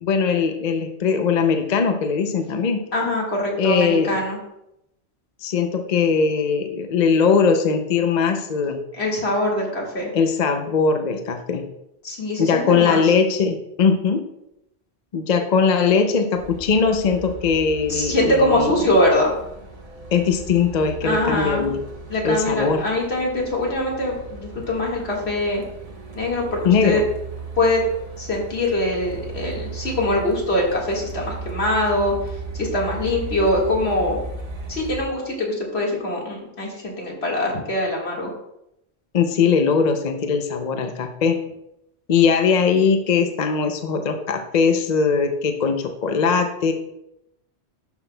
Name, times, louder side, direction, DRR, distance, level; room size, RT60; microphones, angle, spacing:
voice 1, 0.0-2.8 3.6-4.1 5.4-8.8 10.1-11.6 12.4-14.2 15.1-18.7 20.1-21.8 22.2-22.8 26.6-27.0 39.1-41.4 42.1-46.7, left 5 dB, 50° left, 6 dB, 0.6 m, -20 dB
voice 2, 2.9-4.4 8.9-10.1 12.0-13.1 17.9-19.3 21.0-21.7 22.1-25.6 26.1-27.0 27.6-27.8 28.2-34.2 34.7-38.3, left 1 dB, 70° left, -2 dB, 2.1 m, -23 dB
Truck, 16.4-35.0, right 4 dB, 35° right, 1.0 m, -36 dB
11.5 x 5.8 x 2.2 m, 0.83 s
omnidirectional pair, 1.1 m